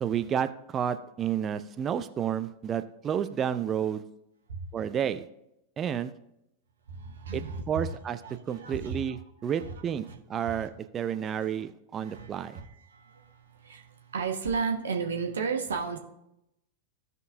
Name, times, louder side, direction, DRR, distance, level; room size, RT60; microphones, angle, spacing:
voice 1, 0.0-4.0 4.7-5.2 5.8-6.1 7.3-8.2 8.5-12.6, right 9 dB, 25° right, 10 dB, 0.5 m, -31 dB
voice 2, 6.9-8.0 8.2-9.0 9.6-9.7 10.1-10.2 10.5-10.6 11.2-11.3 12.0-16.0, right 5 dB, 65° right, 3 dB, 1.2 m, -34 dB
16.0 x 5.4 x 2.7 m, 0.84 s
figure-of-eight pair, 90°, 0 cm